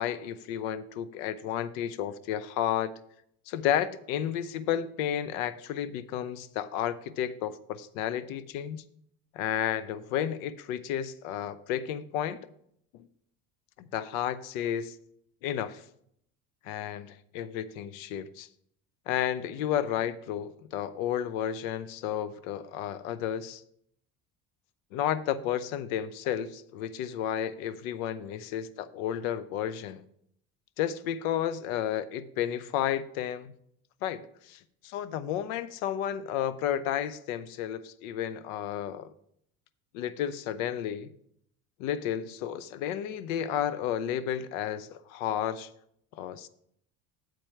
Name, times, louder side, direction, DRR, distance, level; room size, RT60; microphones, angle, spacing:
voice 1, 0.0-2.9 3.5-8.8 9.3-12.4 12.9-13.1 13.8-15.0 15.4-15.8 16.6-18.5 19.1-23.6 24.9-30.0 30.8-33.5 34.0-39.1 39.9-41.1 41.8-45.7 46.1-46.5, left 10 dB, 90° left, 16 dB, 0.6 m, -32 dB
7.7 x 4.4 x 5.6 m, 0.72 s
supercardioid pair, 85°, 41 cm